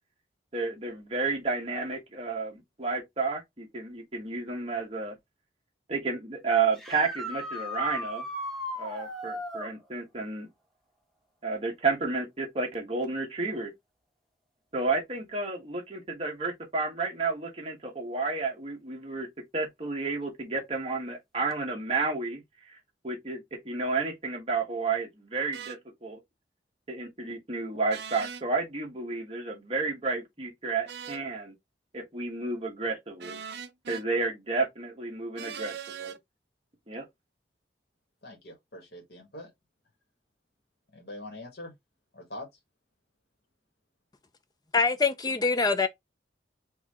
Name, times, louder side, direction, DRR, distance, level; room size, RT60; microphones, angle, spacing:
voice 1, 0.5-5.1 5.9-8.3 8.8-10.5 11.4-13.7 14.7-19.3 19.5-22.7 23.0-26.2 26.9-31.5 31.9-33.4 33.9-36.1 36.9-37.0, right 4 dB, 35° right, 1.4 m, -31 dB
sound 1, 6.7-9.7 13.0-13.1 15.2-15.3 21.5-21.6, left 1 dB, ahead, 1.1 m, -36 dB
sound 2, 25.5-25.8 27.9-28.4 30.9-31.3 33.2-34.0 35.4-36.2, right 7 dB, 70° right, 0.6 m, -40 dB
voice 2, 38.2-39.5 40.9-41.7 42.1-42.5, left 1 dB, 65° left, 1.7 m, -43 dB
voice 3, 44.7-45.9, left 4 dB, 25° left, 0.5 m, -24 dB
4.8 x 2.8 x 3.6 m
head